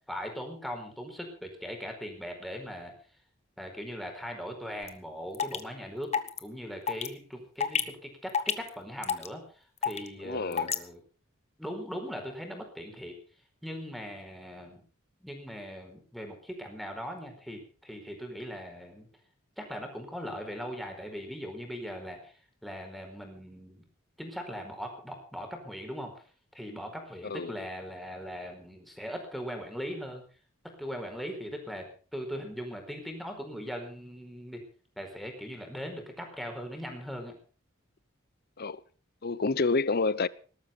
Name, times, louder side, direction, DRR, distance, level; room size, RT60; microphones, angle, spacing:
voice 1, 0.1-2.9 3.6-6.1 6.4-11.0 11.6-13.2 13.6-14.8 15.2-19.1 19.6-23.8 24.2-26.2 26.5-30.2 30.8-34.6 35.0-37.3, equal, ahead, 4.6 m, -40 dB
sound 1, 4.9-5.0 5.3-5.6 6.1-6.4 6.9-7.1 7.6-7.8 8.3-8.7 9.0-9.3 9.8-10.1 10.5-10.8, left 7 dB, 30° left, 1.3 m, -27 dB
voice 2, 10.2-10.7 27.2-27.6 38.6-38.8 39.2-40.3, left 3 dB, 50° left, 0.8 m, -28 dB
19.0 x 12.5 x 5.4 m
head